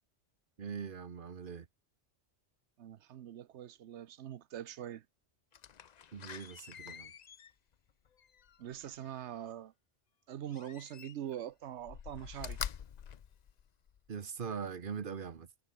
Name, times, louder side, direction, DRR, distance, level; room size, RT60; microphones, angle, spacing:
voice 1, 0.6-1.7 6.1-7.1 14.1-15.5, right 6 dB, 45° right, 1.1 m, -41 dB
voice 2, 2.8-5.0 8.6-9.7 10.3-12.6, right 11 dB, 70° right, 1.0 m, -43 dB
Slam, 5.5-9.4 10.5-11.4 11.8-14.1 14.6-14.7, left 8 dB, 50° left, 0.6 m, -46 dB
omnidirectional pair, 1.3 m